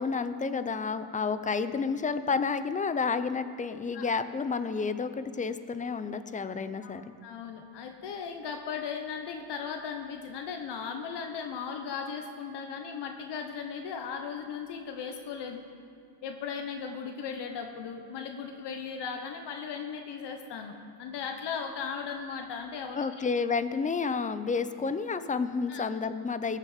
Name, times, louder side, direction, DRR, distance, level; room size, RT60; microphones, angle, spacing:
voice 1, 0.0-7.1 22.9-26.6, left 5 dB, 20° left, 12 dB, 0.5 m, -30 dB
voice 2, 7.2-15.6 16.2-23.0 25.7-25.8, left 6 dB, 65° left, 4 dB, 1.1 m, -37 dB
19.0 x 6.6 x 5.1 m, 2.5 s
cardioid pair, 110°, 45 cm